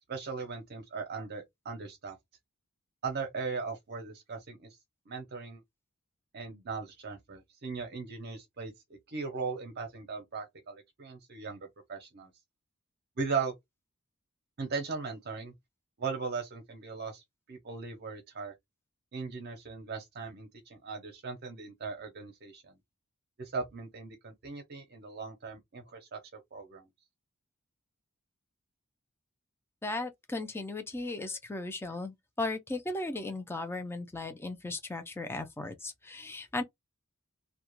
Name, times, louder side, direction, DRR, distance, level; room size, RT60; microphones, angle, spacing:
voice 1, 0.1-2.2 3.0-4.7 5.1-5.6 6.3-8.7 9.1-12.3 13.2-13.5 14.6-15.5 16.0-17.2 17.5-18.5 19.1-22.7 23.4-26.8, right 4 dB, 50° right, 0.6 m, -38 dB
voice 2, 29.8-36.6, left 2 dB, 10° left, 0.4 m, -36 dB
2.3 x 2.1 x 2.9 m
head